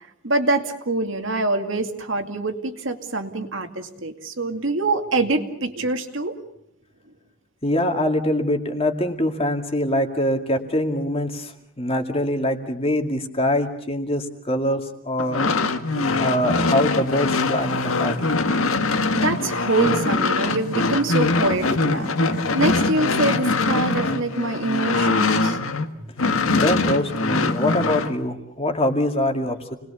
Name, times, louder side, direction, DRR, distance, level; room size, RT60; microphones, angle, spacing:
voice 1, 0.2-6.4 15.8-16.2 19.1-26.6, right 2 dB, 65° right, 5 dB, 2.4 m, -25 dB
voice 2, 7.6-15.5 16.2-18.4 26.5-29.7, left 1 dB, 25° left, 4 dB, 2.3 m, -24 dB
sound 1, 15.2-25.9 26.2-28.1, left 3 dB, 85° left, 1.8 m, -22 dB
29.0 x 20.5 x 7.0 m, 0.77 s
head